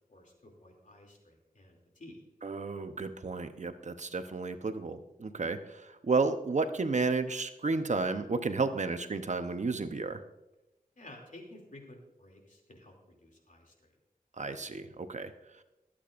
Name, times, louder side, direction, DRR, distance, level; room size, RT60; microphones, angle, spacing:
voice 1, 0.1-2.2 11.0-13.7, left 1 dB, 60° left, 1 dB, 2.7 m, -53 dB
voice 2, 2.4-10.2 14.4-15.3, right 4 dB, 50° right, 8 dB, 0.8 m, -32 dB
22.5 x 8.6 x 2.5 m, 0.93 s
wide cardioid pair, 70°, 15 cm